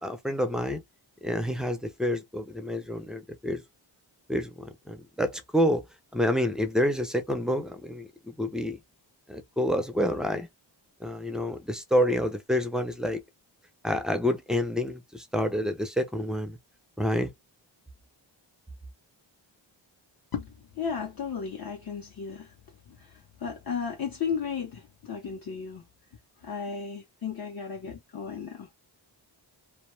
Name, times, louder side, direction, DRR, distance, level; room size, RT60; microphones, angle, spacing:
voice 1, 0.0-0.8 1.2-3.6 4.3-5.8 6.1-8.8 9.3-10.5 11.0-13.2 13.8-16.6 17.0-17.3, equal, ahead, 0.4 m, -28 dB
voice 2, 20.3-22.5 22.9-25.8 26.4-28.7, left 6 dB, 50° left, 0.7 m, -34 dB
2.2 x 2.1 x 3.0 m
wide cardioid pair, 95°, 46 cm